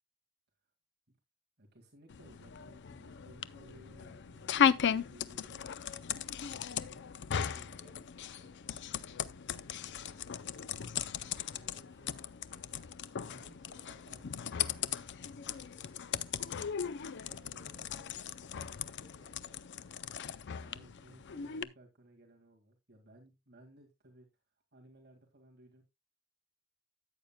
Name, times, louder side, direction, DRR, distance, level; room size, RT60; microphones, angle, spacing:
voice 1, 1.6-7.0 7.3-8.0 13.2-13.5 13.8-14.7 17.2-17.7 20.6-24.3 24.7-25.8, right 1 dB, 50° right, 2.0 m, -59 dB
sound 1, 2.1-21.6, left 8 dB, 60° left, 0.5 m, -37 dB
voice 2, 7.6-10.3 11.2-14.1 14.6-15.1 15.5-16.5 16.8-20.0, left 1 dB, 20° right, 4.2 m, -63 dB
13.5 x 8.8 x 2.2 m
head